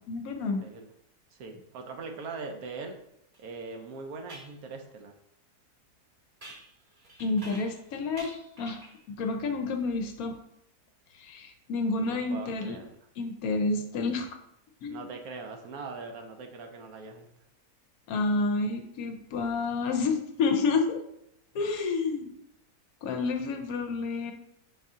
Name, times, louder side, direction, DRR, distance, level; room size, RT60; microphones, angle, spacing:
voice 1, 0.1-0.6 7.2-8.8 9.2-10.4 11.1-12.8 13.2-14.3 14.8-15.1 18.1-21.0 21.5-22.3 23.0-24.3, left 3 dB, 70° left, 5 dB, 1.0 m, -29 dB
voice 2, 0.6-0.9 1.3-3.0 3.4-5.1 12.1-13.0 14.9-17.3, right 4 dB, 70° right, 4 dB, 1.1 m, -41 dB
sound 1, 3.3-3.4 4.3-4.6 6.4-7.9 8.2-9.0, right 1 dB, 40° right, 0.9 m, -48 dB
5.4 x 2.7 x 3.6 m, 0.77 s
omnidirectional pair, 1.7 m